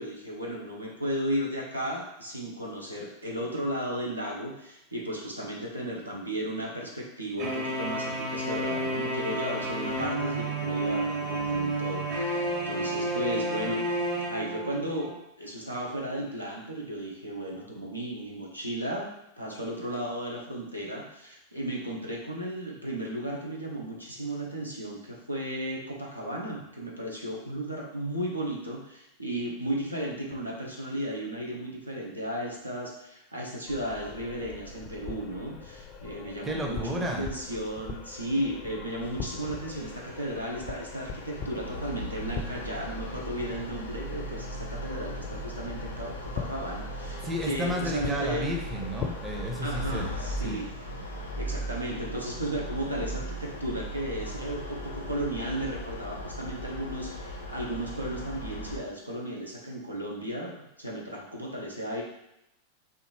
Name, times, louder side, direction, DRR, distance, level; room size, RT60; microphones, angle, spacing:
voice 1, 0.0-15.1 15.4-19.1 19.4-48.5 49.6-50.7 51.4-62.0, right 1 dB, 85° right, -2 dB, 0.8 m, -35 dB
sound 1, 7.4-15.1, right 1 dB, 45° right, 1.3 m, -30 dB
sound 2, 33.7-50.5, left 5 dB, 35° left, 0.5 m, -42 dB
voice 2, 36.4-37.3 47.2-50.1 50.4-50.6, equal, 15° right, 1 dB, 0.7 m, -32 dB
sound 3, 39.0-58.8, equal, 80° left, 0.6 m, -38 dB
4.5 x 2.7 x 3.1 m, 0.84 s
figure-of-eight pair, 90°, 0 cm